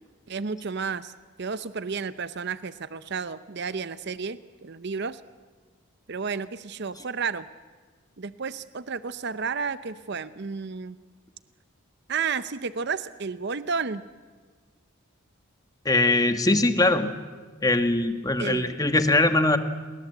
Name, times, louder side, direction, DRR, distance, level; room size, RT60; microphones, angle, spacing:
voice 1, 0.3-1.1 1.4-5.2 6.1-7.5 8.2-11.0 12.1-14.0 18.4-18.8, right 5 dB, 55° right, 14 dB, 0.7 m, -32 dB
voice 2, 15.8-17.1 17.6-19.6, left 2 dB, 15° left, 9 dB, 1.3 m, -21 dB
29.5 x 21.0 x 8.0 m, 1.5 s
head